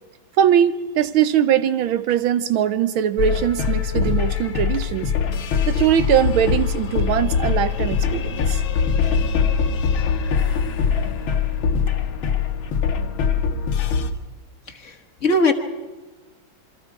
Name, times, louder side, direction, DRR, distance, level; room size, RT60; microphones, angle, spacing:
voice 1, 0.4-5.1 5.7-8.6, right 9 dB, 80° right, 13 dB, 1.7 m, -21 dB
sound 1, 3.2-14.1, left 6 dB, 80° left, 2.0 m, -22 dB
voice 2, 14.7-15.5, left 2 dB, 40° left, 3 dB, 1.5 m, -21 dB
27.0 x 23.5 x 4.8 m, 1.2 s
omnidirectional pair, 2.2 m